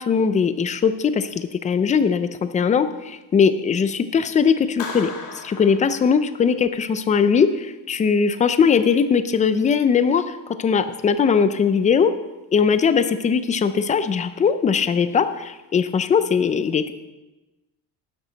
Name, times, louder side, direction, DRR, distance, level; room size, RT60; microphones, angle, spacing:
voice 1, 0.0-12.1 12.5-16.9, left 6 dB, 20° left, 11 dB, 0.3 m, -20 dB
Clapping, 4.8-6.7, left 4 dB, 85° left, 2.4 m, -36 dB
12.0 x 10.5 x 4.0 m, 1.1 s
cardioid pair, 175°, 42 cm